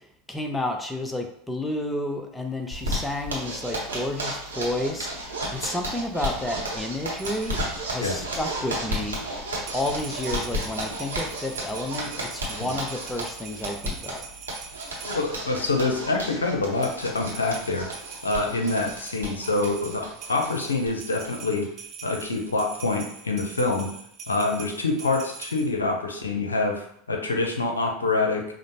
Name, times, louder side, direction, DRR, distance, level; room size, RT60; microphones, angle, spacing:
voice 1, 0.3-7.6 7.9-9.4 9.7-14.2, left 1 dB, 10° left, 3 dB, 0.6 m, -31 dB
Zipper (clothing), 2.7-20.9 21.2-21.3 21.6-21.7 22.0-22.5, right 1 dB, 85° right, 0.9 m, -33 dB
sound 1, 7.2-7.7 9.6-15.4 16.8-25.7, right 6 dB, 40° right, 0.7 m, -43 dB
voice 2, 15.0-21.7 22.0-23.9 24.3-28.4, left 3 dB, 85° left, 3 dB, 0.6 m, -26 dB
5.0 x 2.0 x 2.8 m, 0.67 s
figure-of-eight pair, 80°, 0 cm